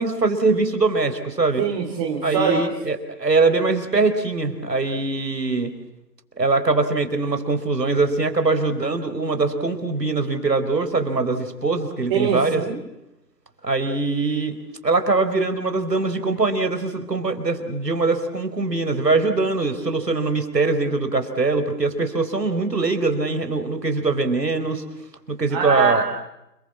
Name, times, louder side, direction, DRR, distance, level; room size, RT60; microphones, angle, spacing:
voice 1, 0.0-1.6 2.2-5.7 6.4-12.6 13.6-14.6 14.8-24.8 25.3-26.0, right 3 dB, 80° right, 8 dB, 4.6 m, -22 dB
voice 2, 1.6-2.6 12.1-12.8 25.5-26.0, right 6 dB, 20° right, -2 dB, 3.0 m, -23 dB
30.0 x 21.0 x 7.5 m, 0.89 s
figure-of-eight pair, 150°, 49 cm